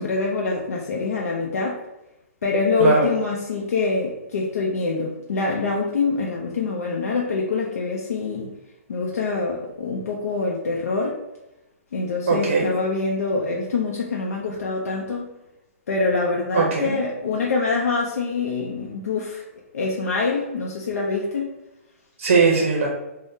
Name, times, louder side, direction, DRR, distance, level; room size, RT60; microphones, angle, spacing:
voice 1, 0.0-1.8 2.4-8.5 8.9-11.2 11.9-15.3 15.9-19.4 19.7-21.5, left 4 dB, 85° left, -1 dB, 0.5 m, -25 dB
voice 2, 2.8-3.1 12.3-12.7 16.5-16.9 22.2-22.9, right 4 dB, 50° right, 0 dB, 0.6 m, -19 dB
3.5 x 2.1 x 2.6 m, 0.96 s
hypercardioid pair, 175°, 8 cm